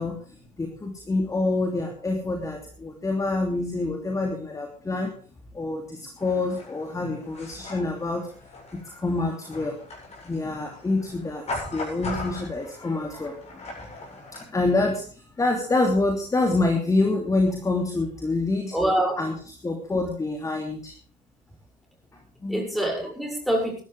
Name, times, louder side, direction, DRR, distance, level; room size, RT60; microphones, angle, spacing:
voice 1, 0.0-5.1 5.5-8.3 8.7-9.8 10.2-13.9 14.3-18.8 19.2-21.0 22.4-22.7, left 2 dB, 15° left, 3 dB, 2.8 m, -27 dB
sound 1, 6.2-14.4, left 2 dB, 30° left, 7.8 m, -39 dB
voice 2, 18.7-19.2 19.9-20.0 22.5-23.8, right 1 dB, ahead, 0 dB, 6.9 m, -25 dB
21.0 x 12.5 x 3.5 m, 0.43 s
figure-of-eight pair, 65°, 21 cm